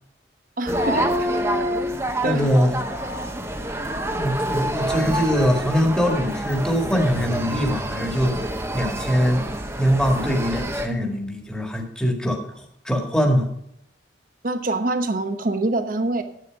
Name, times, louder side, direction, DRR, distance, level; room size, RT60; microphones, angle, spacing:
voice 1, 0.6-1.3 2.2-2.5 10.2-10.3 14.4-16.2, right 2 dB, 50° right, 9 dB, 0.9 m, -25 dB
sound 1, 0.7-10.9, right 1 dB, 15° right, 0.9 m, -27 dB
voice 2, 2.2-2.8 4.2-8.4 8.7-9.4 9.8-13.5, equal, 5° left, 1 dB, 1.7 m, -22 dB
10.5 x 8.6 x 5.1 m, 0.74 s
head